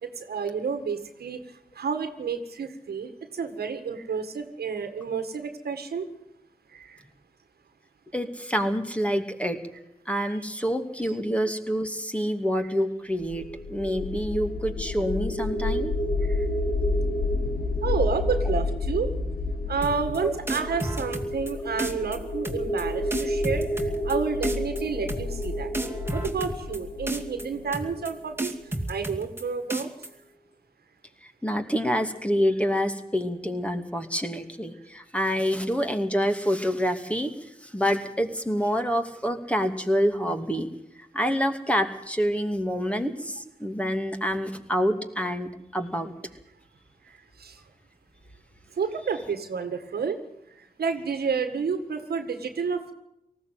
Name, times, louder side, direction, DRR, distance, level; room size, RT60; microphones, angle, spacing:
voice 1, 0.0-1.4 1.7-6.1 6.7-7.0 16.2-16.5 17.8-19.1 19.7-25.7 26.1-28.5 28.9-29.9 47.0-47.6 48.8-50.2 50.5-52.9, right 5 dB, 90° right, 8 dB, 1.8 m, -30 dB
voice 2, 8.1-9.6 10.1-16.2 17.4-17.6 20.2-20.3 31.4-40.7 41.1-46.1, equal, 10° left, 6 dB, 2.7 m, -27 dB
sound 1, 13.2-28.3, left 2 dB, 75° left, 2.9 m, -29 dB
sound 2, 19.8-20.2 20.5-21.5 21.8-22.2 22.4-22.8 23.1-24.2 24.4-24.8 25.1-25.5 25.7-26.8 27.1-27.5 27.7-28.1 28.4-29.4 29.7-30.1, right 2 dB, 15° right, 2.5 m, -31 dB
19.0 x 15.0 x 9.3 m, 0.80 s
cardioid pair, 50°, 16 cm